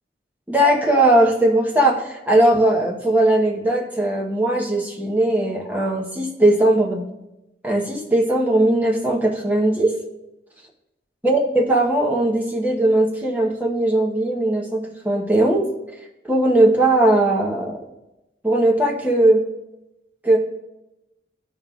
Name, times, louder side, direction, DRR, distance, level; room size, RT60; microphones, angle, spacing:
voice 1, 0.5-7.0 7.6-9.9 11.2-15.7 16.3-17.8 18.4-19.4 20.2-20.4, right 1 dB, 10° right, -2 dB, 1.0 m, -18 dB
14.0 x 5.4 x 2.4 m, 0.94 s
head